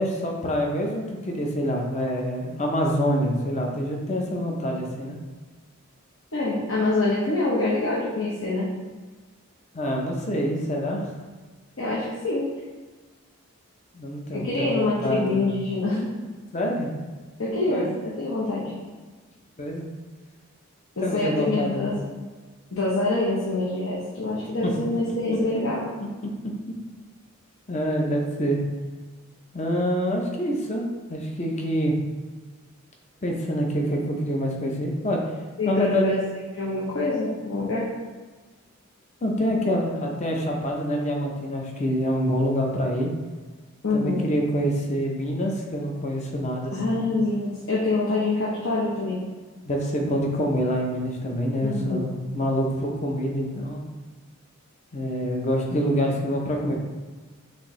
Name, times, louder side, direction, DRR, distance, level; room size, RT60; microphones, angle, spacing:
voice 1, 0.0-5.2 9.7-11.0 13.9-15.5 16.5-16.9 17.7-17.9 19.6-19.9 21.0-21.9 24.6-24.7 27.7-28.6 29.5-32.0 33.2-35.2 35.7-36.1 39.2-43.1 43.9-47.1 49.6-53.8 54.9-56.7, equal, 30° left, 0 dB, 0.7 m, -26 dB
voice 2, 6.3-8.7 11.8-12.5 14.3-16.1 17.4-18.7 21.0-22.0 22.7-25.8 35.6-36.1 36.6-37.9 43.8-44.2 46.7-49.2 51.6-52.1, left 2 dB, 60° left, -6 dB, 0.8 m, -25 dB
6.2 x 2.7 x 3.1 m, 1.4 s
head